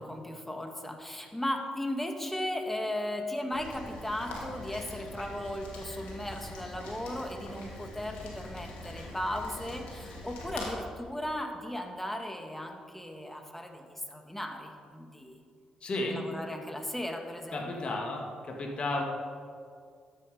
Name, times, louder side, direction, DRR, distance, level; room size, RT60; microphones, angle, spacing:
voice 1, 0.0-15.4 16.1-17.9, left 1 dB, 10° left, 4 dB, 1.7 m, -36 dB
Rain, 3.5-10.7, left 2 dB, 85° left, 2.2 m, -43 dB
voice 2, 15.8-16.2 17.5-19.0, left 2 dB, 50° left, 1 dB, 2.1 m, -33 dB
11.5 x 7.8 x 5.2 m, 2.2 s
supercardioid pair, 50°, 2 cm